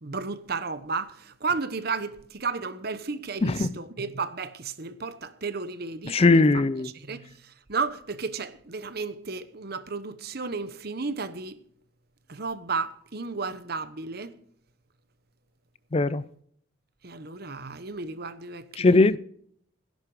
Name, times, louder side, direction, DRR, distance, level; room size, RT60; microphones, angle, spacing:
voice 1, 0.0-6.3 6.5-11.6 12.3-14.3 17.0-19.2, right 4 dB, 50° right, 1.0 m, -33 dB
voice 2, 6.1-6.9 15.9-16.2 18.8-19.2, left 3 dB, 30° left, 0.4 m, -19 dB
17.5 x 10.5 x 4.9 m
head